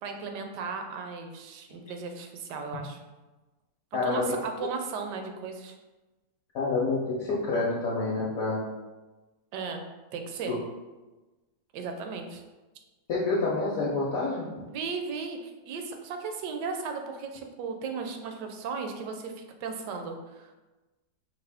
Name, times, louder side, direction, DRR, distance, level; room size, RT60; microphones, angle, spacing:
voice 1, 0.0-3.0 4.0-5.7 9.5-9.8 10.1-10.5 11.7-12.4 14.7-20.5, right 5 dB, 75° right, 4 dB, 1.1 m, -36 dB
voice 2, 3.9-4.7 6.5-8.6 10.5-10.6 13.1-14.5, left 3 dB, 60° left, -6 dB, 1.0 m, -28 dB
4.9 x 2.5 x 3.4 m, 1.2 s
omnidirectional pair, 1.9 m